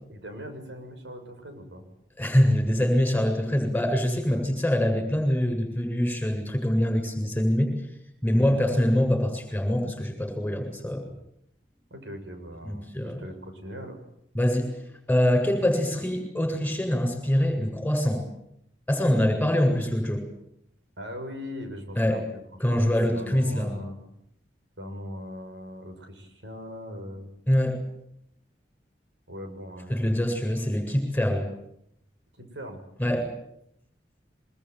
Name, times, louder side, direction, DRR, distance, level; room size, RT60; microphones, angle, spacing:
voice 1, 0.1-1.8 4.3-4.4 8.3-8.6 11.9-14.0 21.0-22.2 22.7-22.8 23.1-24.0 24.8-27.3 29.3-30.1 32.3-32.8, equal, 80° right, 5 dB, 6.6 m, -40 dB
voice 2, 2.2-7.7 8.2-11.0 12.6-13.2 14.3-14.7 15.1-18.2 18.9-20.2 22.0-22.2 22.6-23.7 27.5-27.8 29.9-31.5 33.0-33.3, equal, 10° left, 5 dB, 7.8 m, -24 dB
24.5 x 23.0 x 9.4 m, 0.76 s
head